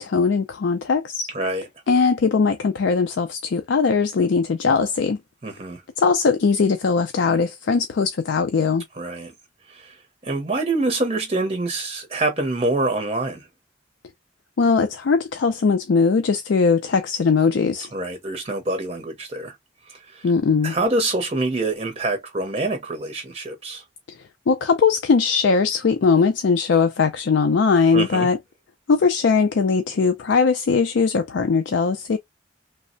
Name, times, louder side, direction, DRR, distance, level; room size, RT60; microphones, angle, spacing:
voice 1, 0.0-1.3 1.9-5.2 6.0-8.8 14.6-17.9 20.2-20.7 24.5-28.4 28.9-32.2, left 5 dB, 75° left, 0.4 m, -20 dB
voice 2, 5.4-5.8 9.0-9.3 9.7-10.0 10.2-13.5 17.9-19.6 19.9-20.3 20.6-23.8 27.9-28.3, right 2 dB, 30° right, 0.6 m, -25 dB
3.2 x 2.0 x 2.5 m
head